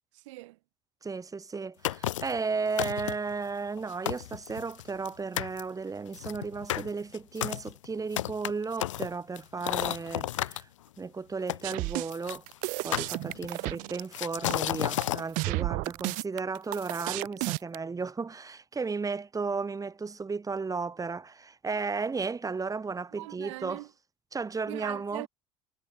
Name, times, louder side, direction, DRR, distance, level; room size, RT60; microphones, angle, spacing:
voice 1, 0.1-0.6 13.6-13.9 23.2-23.9 24.7-25.3, right 20 dB, 75° right, 2.4 m, -41 dB
voice 2, 1.0-10.7 11.0-12.4 12.8-23.8 24.3-25.3, right 4 dB, 20° right, 3.8 m, -34 dB
sound 1, 1.8-2.4 2.8-3.3 3.8-3.9 4.1-5.1 5.4-5.6 6.1-10.6 11.5-12.4 12.9-13.7 14.1-15.2, left 13 dB, 85° left, 0.4 m, -32 dB
sound 2, 11.6-17.8, right 27 dB, 60° right, 0.4 m, -32 dB
hypercardioid pair, 75°, 16 cm